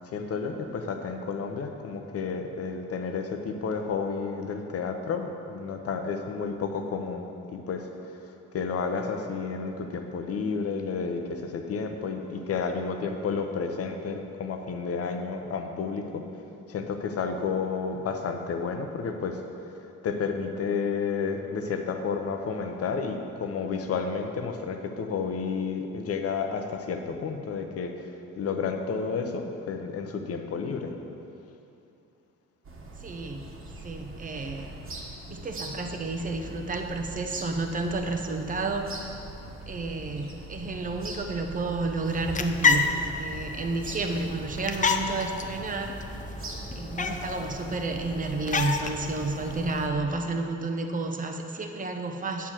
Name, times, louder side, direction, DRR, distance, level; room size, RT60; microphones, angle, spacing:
voice 1, 0.1-16.2 16.7-19.4 20.0-28.1 28.4-30.9, left 5 dB, 50° left, 5 dB, 0.8 m, -31 dB
sound 1, 32.6-49.9, right 2 dB, 45° right, 1.5 m, -41 dB
voice 2, 33.0-33.4 33.8-34.7 35.3-39.0 39.7-46.0 46.8-52.5, right 3 dB, 25° right, 4 dB, 0.8 m, -31 dB
sound 2, 42.0-49.9, left 4 dB, 25° left, 0.5 m, -30 dB
8.3 x 4.7 x 7.4 m, 2.7 s
cardioid pair, 90°, 30 cm